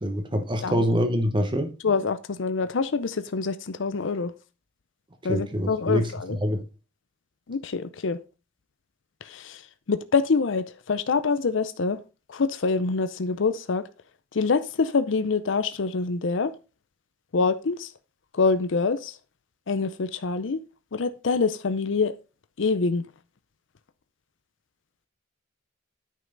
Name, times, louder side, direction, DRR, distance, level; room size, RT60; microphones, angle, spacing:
voice 1, 0.0-1.7 5.3-6.6, equal, 25° right, 1.2 m, -25 dB
voice 2, 1.8-4.3 5.2-6.4 7.5-8.2 9.2-9.6 9.9-12.0 12.3-13.8 14.3-16.5 17.3-17.9 18.3-19.1 19.7-20.6 20.9-22.1 22.6-23.1, left 4 dB, 70° left, 0.6 m, -25 dB
9.3 x 5.6 x 3.9 m
head